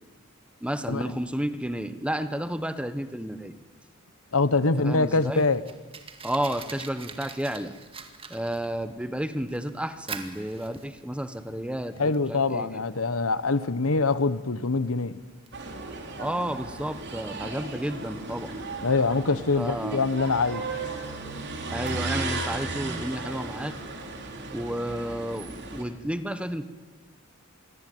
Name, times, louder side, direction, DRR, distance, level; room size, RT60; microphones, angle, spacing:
voice 1, 0.6-3.5 4.8-5.5 6.2-7.7 8.3-12.8 16.2-18.5 19.6-20.0 21.7-23.8 24.5-26.7, right 1 dB, 5° right, 11 dB, 1.3 m, -31 dB
voice 2, 4.3-5.6 12.0-15.2 18.8-20.6, left 3 dB, 80° left, 15 dB, 1.2 m, -24 dB
Fire, 5.1-22.5, right 5 dB, 25° right, 2.2 m, -47 dB
sound 1, 15.5-25.8, right 3 dB, 55° right, 4.1 m, -35 dB
27.0 x 22.0 x 9.4 m, 1.3 s
head